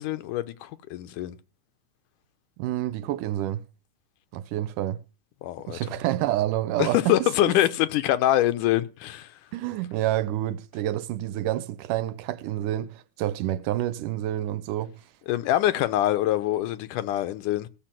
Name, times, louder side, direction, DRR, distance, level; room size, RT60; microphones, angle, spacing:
voice 1, 0.0-1.4 5.4-5.8 6.8-9.3 15.3-17.7, left 14 dB, 90° left, 2.5 m, -24 dB
voice 2, 2.6-3.6 4.3-5.0 5.7-7.2 7.4-7.5 9.5-14.9, right 13 dB, 85° right, 2.4 m, -28 dB
16.5 x 7.0 x 7.5 m
omnidirectional pair, 3.6 m